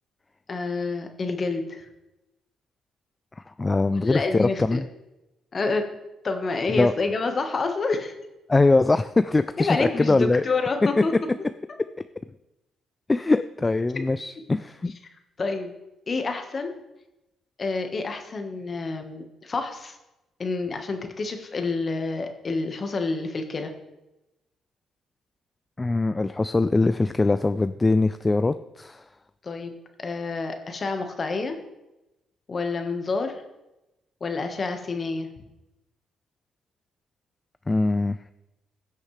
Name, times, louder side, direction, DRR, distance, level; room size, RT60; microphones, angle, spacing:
voice 1, 0.5-1.8 3.9-4.8 5.5-5.9 6.2-8.1 9.6-11.1 13.9-14.0 15.4-15.7 16.1-16.7 17.6-20.0 20.4-23.7 29.4-29.7 30.0-31.6 32.5-33.4 34.2-35.3, left 3 dB, 40° left, 6 dB, 1.4 m, -28 dB
voice 2, 3.5-4.9 6.7-6.9 8.5-10.4 13.1-14.9 25.8-29.0 37.7-38.2, left 3 dB, 20° left, 12 dB, 0.3 m, -22 dB
16.0 x 6.3 x 3.3 m, 0.95 s
cardioid pair, 90°, 0 cm